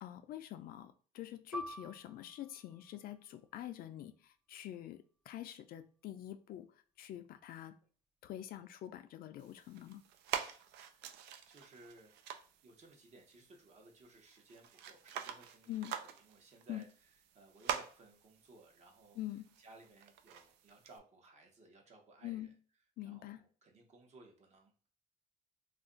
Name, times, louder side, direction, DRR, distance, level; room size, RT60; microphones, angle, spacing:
voice 1, 0.0-5.0 5.3-6.7 7.0-7.8 8.2-10.0 15.7-15.9 16.7-16.8 19.2-19.5 22.2-22.5 23.0-23.4, left 13 dB, 60° left, 9 dB, 0.4 m, -45 dB
Piano, 1.5-6.6 6.9-7.1 7.8-8.2, right 1 dB, 5° right, 0.4 m, -51 dB
sound 1, 9.4-21.0, right 9 dB, 80° right, 0.4 m, -46 dB
voice 2, 10.7-12.1 12.6-19.2 19.6-22.5 23.0-24.7, right 2 dB, 45° right, 2 dB, 0.9 m, -60 dB
2.4 x 2.2 x 3.7 m, 0.41 s
cardioid pair, 110°, 17 cm